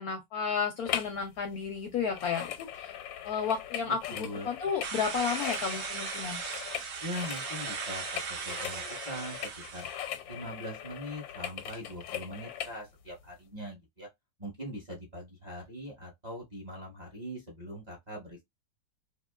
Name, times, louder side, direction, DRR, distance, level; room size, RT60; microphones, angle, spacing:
voice 1, 0.0-2.9 3.2-6.4, left 6 dB, 70° left, 0.9 m, -32 dB
sound 1, 0.9-1.2 1.5-12.8 13.3-13.4, left 10 dB, 90° left, 1.3 m, -40 dB
voice 2, 3.8-4.5 7.0-9.4 9.7-9.9 10.3-14.1 14.4-18.4, equal, 25° right, 1.0 m, -41 dB
sound 2, 4.8-10.0, right 5 dB, 65° right, 0.6 m, -38 dB
2.9 x 2.8 x 2.3 m
omnidirectional pair, 2.0 m